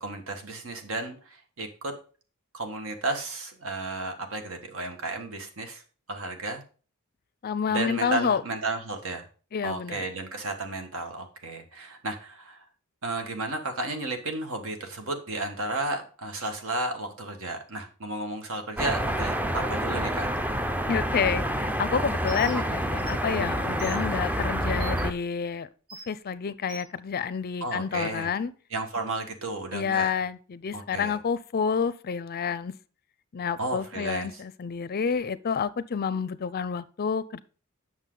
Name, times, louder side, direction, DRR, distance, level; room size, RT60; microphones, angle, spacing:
voice 1, 0.0-2.0 2.5-5.8 6.1-6.6 7.7-9.3 9.6-12.6 13.0-20.3 27.6-28.3 28.7-30.1 30.7-31.2 33.6-34.3, right 2 dB, 70° right, 6 dB, 1.4 m, -33 dB
voice 2, 7.4-8.4 9.5-10.0 20.9-25.7 26.1-28.5 29.7-32.7 33.3-37.4, left 6 dB, 45° left, 17 dB, 0.5 m, -29 dB
sound 1, 18.8-25.1, equal, 10° right, 0.5 m, -28 dB
Bird, 22.3-22.6 23.0-23.1 23.8-24.0 24.8-25.0 25.9-26.1 26.7-26.9, right 2 dB, 45° right, 1.6 m, -42 dB
8.2 x 6.2 x 3.8 m, 0.38 s
head